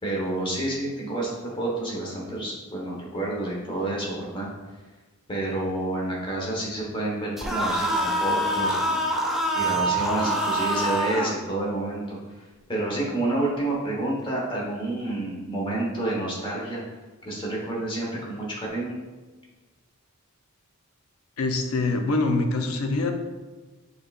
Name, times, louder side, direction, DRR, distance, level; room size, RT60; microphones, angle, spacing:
voice 1, 0.0-4.5 5.3-9.0 9.5-12.2 12.7-16.8 17.2-19.0, right 2 dB, 25° left, -4 dB, 1.1 m, -29 dB
sound 1, 7.4-11.4, right 1 dB, ahead, 0.4 m, -25 dB
voice 2, 21.4-23.1, left 3 dB, 75° left, 5 dB, 0.6 m, -24 dB
6.6 x 3.3 x 2.4 m, 1.2 s
head